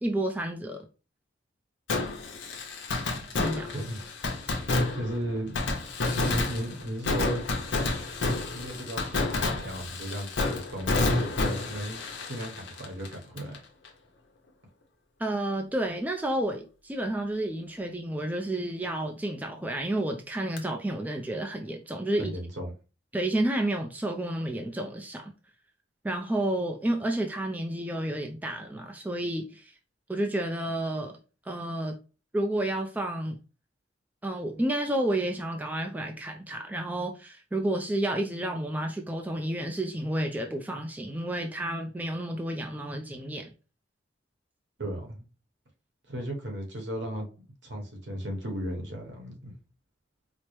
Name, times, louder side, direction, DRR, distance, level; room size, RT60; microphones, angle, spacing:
voice 1, 0.0-0.9 3.3-3.7 4.8-5.0 15.2-22.4 23.1-25.3 26.0-29.7 30.1-31.2 31.5-31.9 32.3-33.4 34.2-43.5, right 1 dB, 10° right, 0.3 m, -30 dB
Fireworks, 1.9-13.6 13.8-13.9 20.6-20.7, left 2 dB, 75° left, 0.8 m, -30 dB
voice 2, 4.9-5.6 6.1-7.4 8.5-13.6 22.2-22.7 44.8-45.2 46.1-47.3 47.6-49.5, equal, 70° right, 1.0 m, -35 dB
4.4 x 2.0 x 3.1 m
head